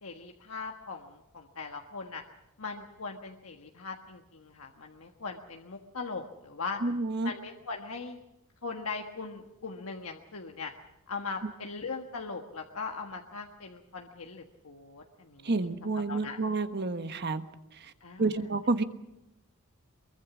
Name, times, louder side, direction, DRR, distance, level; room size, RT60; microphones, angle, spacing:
voice 1, 0.0-2.2 2.6-6.8 7.2-8.2 8.6-10.7 11.1-15.5 16.1-16.4 18.0-18.3, left 4 dB, 75° left, 3 dB, 1.5 m, -40 dB
voice 2, 6.8-7.3 15.4-17.4 17.7-17.9 18.2-18.8, right 3 dB, 50° right, 9 dB, 1.2 m, -29 dB
23.5 x 22.5 x 6.1 m, 0.90 s
head